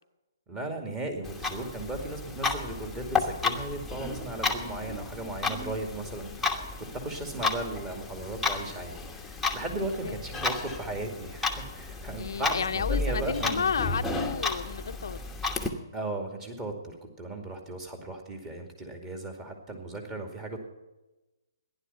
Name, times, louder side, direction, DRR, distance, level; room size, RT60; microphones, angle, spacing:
voice 1, 0.5-13.7 15.9-20.6, right 2 dB, 20° right, 3 dB, 2.4 m, -36 dB
Clock, 1.2-15.7, left 4 dB, ahead, 1.2 m, -33 dB
voice 2, 12.2-15.2, left 6 dB, 75° left, 9 dB, 0.7 m, -32 dB
15.0 x 11.0 x 5.7 m, 1.1 s
hypercardioid pair, 150°, 2 cm